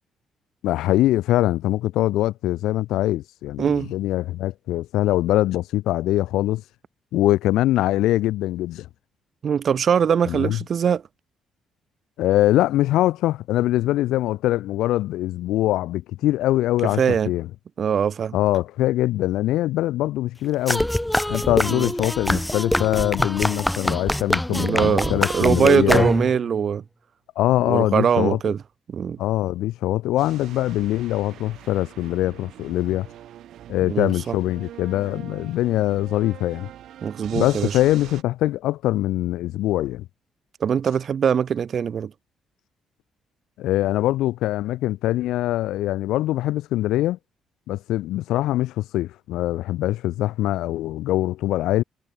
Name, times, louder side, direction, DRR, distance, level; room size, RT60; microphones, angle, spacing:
voice 1, 0.6-6.6 7.1-8.9 10.3-10.6 12.2-17.5 18.3-20.9 21.3-26.1 27.4-28.4 29.2-33.1 33.7-36.7 37.3-40.1 43.6-47.2 47.7-51.8, left 15 dB, 90° left, 0.4 m, -23 dB
voice 2, 3.6-3.9 9.4-11.0 17.0-17.3 17.8-18.4 21.7-21.9 24.5-26.8 27.6-28.6 28.9-29.2 33.9-34.3 37.0-37.8 40.6-42.1, right 7 dB, 55° right, 0.3 m, -22 dB
sound 1, 20.7-26.5, left 1 dB, 5° left, 0.9 m, -24 dB
sound 2, 30.2-38.2, right 12 dB, 75° right, 2.7 m, -43 dB
cardioid pair, 90°, 0 cm